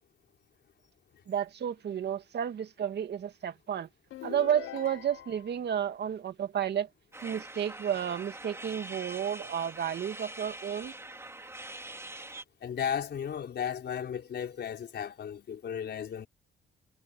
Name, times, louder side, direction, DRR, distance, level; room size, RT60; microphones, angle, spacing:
voice 1, 1.3-3.9 4.2-6.9 7.2-10.9, right 9 dB, 60° right, 2.1 m, -32 dB
sound 1, 4.1-5.6, left 13 dB, 80° left, 1.1 m, -43 dB
sound 2, 7.1-12.4, right 2 dB, 15° right, 3.2 m, -44 dB
voice 2, 12.6-16.3, left 8 dB, 60° left, 4.3 m, -35 dB
cardioid pair, 90°, 20 cm